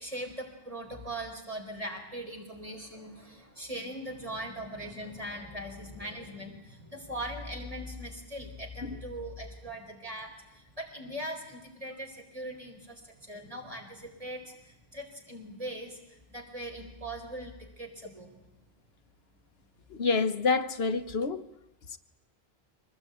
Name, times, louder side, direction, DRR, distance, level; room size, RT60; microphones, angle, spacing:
voice 1, 0.0-18.4, right 1 dB, 35° right, 4.5 m, -40 dB
voice 2, 19.9-21.4 21.9-22.0, left 4 dB, 75° left, 1.3 m, -28 dB
23.5 x 19.0 x 9.1 m
omnidirectional pair, 1.0 m